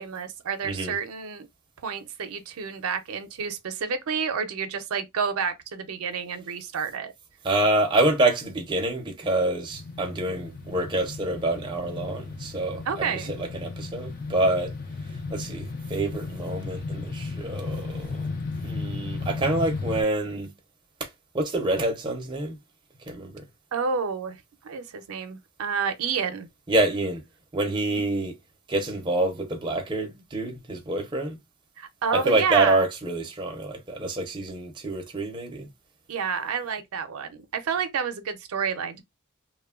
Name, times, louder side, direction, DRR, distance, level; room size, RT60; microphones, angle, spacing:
voice 1, 0.0-1.5 1.8-7.1 12.9-13.3 23.7-26.5 27.9-28.0 31.8-32.8 36.1-39.0, right 6 dB, 85° right, 0.5 m, -29 dB
voice 2, 0.6-0.9 7.4-14.7 15.3-18.2 18.6-20.5 21.0-21.1 21.3-22.6 23.1-23.4 26.7-27.2 27.5-28.3 28.7-31.4 32.1-35.7, right 2 dB, 20° right, 0.5 m, -27 dB
sound 1, 9.7-20.0, left 3 dB, 45° left, 0.5 m, -35 dB
3.0 x 2.1 x 2.3 m
head